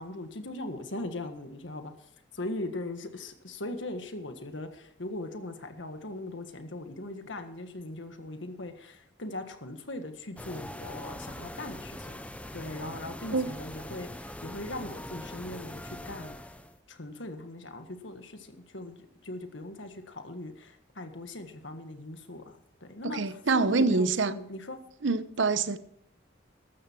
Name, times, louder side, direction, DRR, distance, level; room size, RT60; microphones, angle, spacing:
voice 1, 0.0-12.2 12.5-16.4 16.9-24.8, left 2 dB, 75° left, 1.6 m, -40 dB
sound 1, 10.4-16.8, left 1 dB, 5° left, 0.7 m, -42 dB
voice 2, 23.0-24.3 25.0-25.8, right 3 dB, 75° right, 0.8 m, -26 dB
14.5 x 12.0 x 4.6 m
head